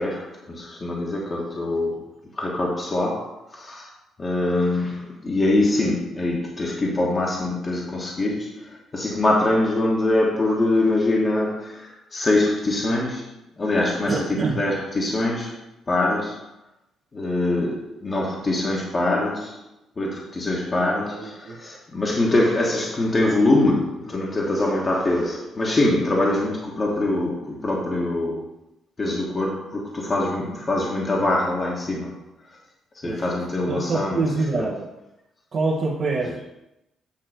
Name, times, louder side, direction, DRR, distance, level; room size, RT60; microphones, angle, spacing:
voice 1, 0.0-3.9 4.2-16.5 17.1-19.6 20.0-28.5 29.0-32.6 32.9-34.7, left 2 dB, 30° left, 1.4 m, -24 dB
voice 2, 14.1-14.6 21.1-21.6 33.0-33.2 33.7-34.9 35.5-36.5, right 3 dB, 50° right, 1.2 m, -25 dB
8.6 x 3.0 x 6.4 m
cardioid pair, 90°, 0 cm